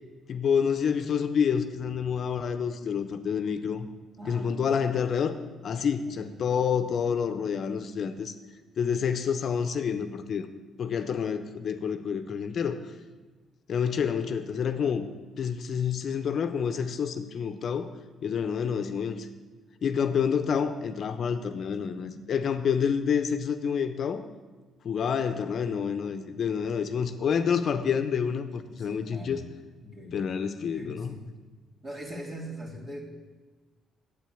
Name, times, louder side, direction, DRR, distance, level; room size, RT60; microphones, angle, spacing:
voice 1, 0.3-3.9 4.3-5.3 5.6-8.3 8.8-10.5 10.8-12.8 13.7-15.1 15.4-17.9 18.2-19.3 19.8-24.2 24.8-29.4 30.1-31.2, left 7 dB, 60° left, 9 dB, 0.9 m, -28 dB
voice 2, 4.2-4.5 6.2-6.3 28.7-29.4 29.8-31.2 31.8-33.0, equal, 35° right, -1 dB, 3.2 m, -41 dB
9.3 x 8.4 x 8.5 m, 1.3 s
cardioid pair, 90°, 0 cm